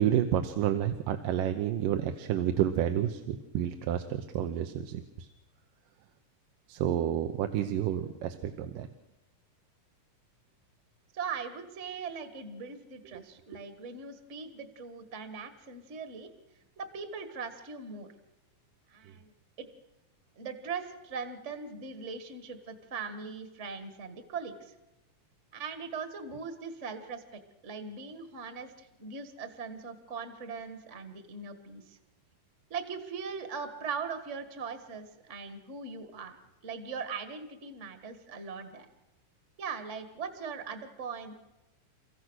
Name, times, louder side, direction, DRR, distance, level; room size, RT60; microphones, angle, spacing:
voice 1, 0.0-5.3 6.7-8.9, right 10 dB, 85° right, 7 dB, 2.6 m, -30 dB
voice 2, 11.1-16.3 16.8-18.1 18.9-19.7 20.4-24.7 25.5-27.2 27.6-32.0 32.7-36.4 36.6-38.9 39.6-41.3, right 5 dB, 35° right, 8 dB, 1.2 m, -40 dB
30.0 x 15.0 x 6.3 m, 0.97 s
omnidirectional pair, 3.8 m